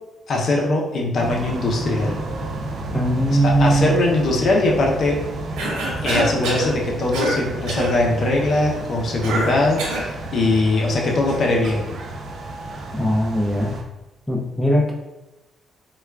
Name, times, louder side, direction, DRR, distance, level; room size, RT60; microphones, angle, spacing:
voice 1, 0.3-2.2 3.3-5.2 6.0-11.8, left 2 dB, 55° left, -1 dB, 0.6 m, -21 dB
sound 1, 1.2-13.8, right 2 dB, 55° right, 0.5 m, -32 dB
voice 2, 2.9-4.0 12.9-13.7 14.3-14.9, right 1 dB, 10° left, 0 dB, 0.5 m, -19 dB
Cough, 5.6-6.7 7.1-7.4 7.7-7.9 9.2-10.1, right 1 dB, 90° right, 0.8 m, -24 dB
4.2 x 2.2 x 2.3 m, 1.0 s
cardioid pair, 90°, 0 cm